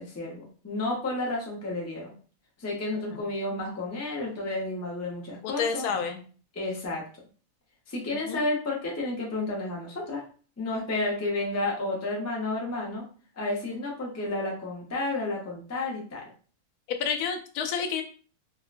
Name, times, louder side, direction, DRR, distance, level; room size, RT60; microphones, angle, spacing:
voice 1, 0.0-2.1 2.6-5.9 6.6-7.0 7.9-10.2 10.6-13.0 13.4-16.2, left 2 dB, 20° left, -2 dB, 0.4 m, -31 dB
voice 2, 5.4-6.2 8.3-8.4 17.0-18.0, left 6 dB, 85° left, 5 dB, 1.1 m, -29 dB
3.6 x 2.1 x 2.4 m, 0.41 s
omnidirectional pair, 1.6 m